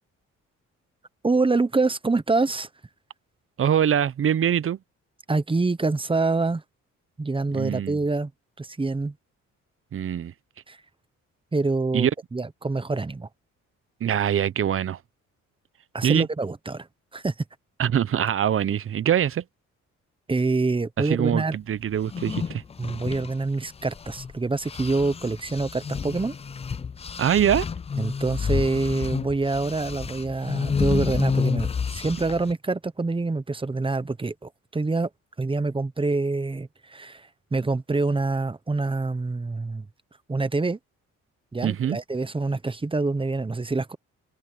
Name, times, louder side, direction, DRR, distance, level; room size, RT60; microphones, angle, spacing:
voice 1, 1.2-2.7 5.3-6.6 7.2-8.3 8.6-9.1 10.7-10.8 11.5-13.3 15.9-16.9 17.1-17.3 20.3-21.6 22.8-26.4 28.0-35.1 35.4-39.9 40.3-40.8 41.5-44.0, right 3 dB, 15° right, 1.0 m, -26 dB
voice 2, 3.6-4.8 7.5-8.0 9.9-10.3 11.9-12.1 14.0-15.0 16.0-16.3 17.8-19.4 21.0-22.6 27.2-27.7 41.6-42.0, right 9 dB, 45° right, 0.8 m, -23 dB
sound 1, 22.0-24.3 24.6-32.5, left 6 dB, 20° left, 0.4 m, -30 dB
cardioid pair, 90°, 30 cm